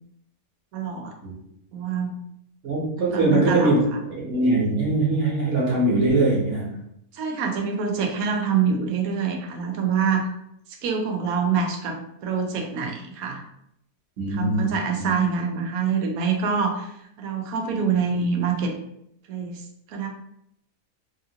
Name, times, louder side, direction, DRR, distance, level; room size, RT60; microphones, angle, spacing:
voice 1, 0.7-1.1 1.7-2.2 3.0-3.8 7.1-10.3 10.8-13.4 14.3-16.9 17.2-18.7 19.3-19.6 19.9-20.1, right 6 dB, 80° right, 3 dB, 1.1 m, -25 dB
voice 2, 2.6-3.8 4.1-6.7 14.2-15.1, right 2 dB, 55° right, -4 dB, 1.2 m, -22 dB
3.5 x 2.4 x 2.8 m, 0.75 s
omnidirectional pair, 1.5 m